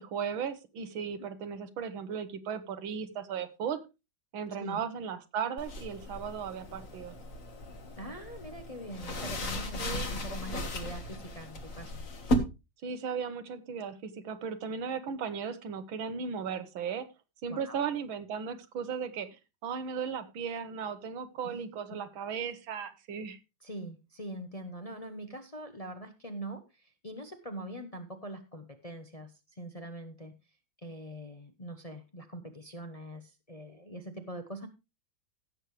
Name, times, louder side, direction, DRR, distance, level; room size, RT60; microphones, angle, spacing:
voice 1, 0.0-3.8 4.3-7.2 9.8-10.1 12.8-17.1 17.4-19.3 19.6-23.4, right 7 dB, 85° right, 11 dB, 2.0 m, -36 dB
sound 1, 5.6-12.3, left 1 dB, 45° left, 1.9 m, -36 dB
voice 2, 8.0-12.0 17.5-17.8 21.4-21.6 21.9-22.0 23.6-30.4 30.8-34.7, right 1 dB, 25° left, 6 dB, 0.8 m, -43 dB
16.0 x 7.6 x 3.2 m, 0.26 s
omnidirectional pair, 2.1 m